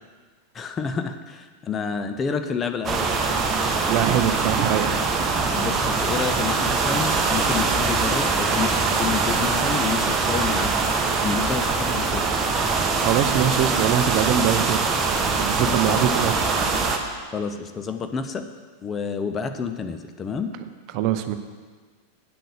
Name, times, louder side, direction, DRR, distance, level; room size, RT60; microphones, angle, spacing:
voice 1, 0.5-3.1 5.5-10.8 11.2-12.2 15.6-16.1 17.3-18.5 18.8-20.5, left 6 dB, 20° left, 7 dB, 0.7 m, -29 dB
sound 1, 2.8-17.0, right 4 dB, 20° right, 1.1 m, -23 dB
voice 2, 3.9-5.0 13.0-14.9 15.4-16.7 20.9-21.3, right 10 dB, 45° right, 10 dB, 0.6 m, -23 dB
8.8 x 7.8 x 6.5 m, 1.5 s
figure-of-eight pair, 90°, 0 cm